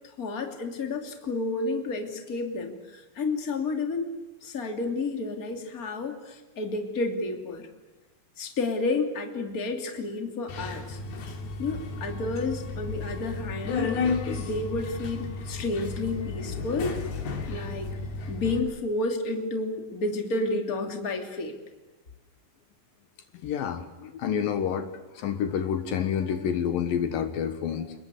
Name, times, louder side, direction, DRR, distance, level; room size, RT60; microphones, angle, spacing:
voice 1, 0.2-4.1 4.4-7.7 8.4-11.0 11.6-13.9 14.4-17.0 17.5-17.9 18.3-21.6, left 3 dB, 25° left, 4 dB, 2.8 m, -31 dB
Subway metro underground, 10.5-18.6, left 4 dB, 85° left, 4.8 m, -33 dB
voice 2, 23.4-24.9 25.2-27.9, left 8 dB, 70° left, 8 dB, 3.0 m, -28 dB
29.5 x 20.5 x 8.4 m, 1.1 s
omnidirectional pair, 4.3 m